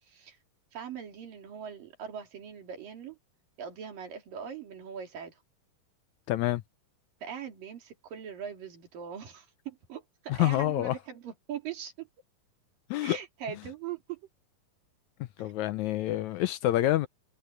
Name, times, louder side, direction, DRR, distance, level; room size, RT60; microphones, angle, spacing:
voice 1, 0.1-0.4 0.7-3.2 3.6-5.4 7.2-12.1 13.0-14.2, right 8 dB, 70° right, 4.9 m, -41 dB
voice 2, 6.3-6.6 10.3-10.9 12.9-13.2 15.4-17.1, left 14 dB, 80° left, 1.7 m, -27 dB
omnidirectional pair, 4.1 m